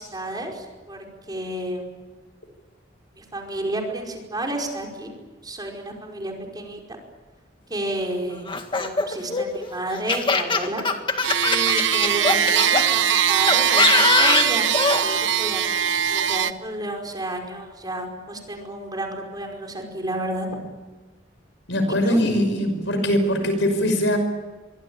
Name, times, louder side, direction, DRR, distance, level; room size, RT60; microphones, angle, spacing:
voice 1, 0.0-1.9 3.2-5.1 5.4-6.8 7.7-10.9 11.4-20.5 22.1-22.2, right 1 dB, 20° right, 1 dB, 5.2 m, -31 dB
Laughter, 8.5-12.8 13.5-15.0, left 4 dB, 25° left, 2.0 m, -22 dB
sound 1, 11.2-16.5, right 9 dB, 70° right, 0.9 m, -21 dB
voice 2, 21.7-24.2, equal, 75° left, 7 dB, 5.7 m, -21 dB
24.5 x 24.0 x 8.9 m, 1.3 s
head